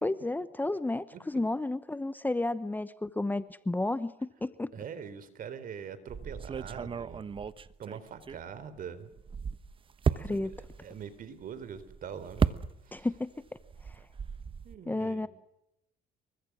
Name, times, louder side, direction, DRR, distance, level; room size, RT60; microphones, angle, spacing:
voice 1, 0.0-4.7 10.2-10.5 12.9-13.3 13.8-14.0 14.9-15.3, left 2 dB, 10° left, 14 dB, 0.9 m, -32 dB
voice 2, 4.7-7.2 7.8-9.1 10.1-10.4 10.8-13.1 14.6-15.3, right 7 dB, 55° right, 13 dB, 4.1 m, -43 dB
sound 1, 6.1-8.8 9.1-13.2 13.5-14.8, right 6 dB, 30° right, 1.1 m, -34 dB
28.5 x 24.0 x 6.3 m, 0.83 s
cardioid pair, 110°, 17 cm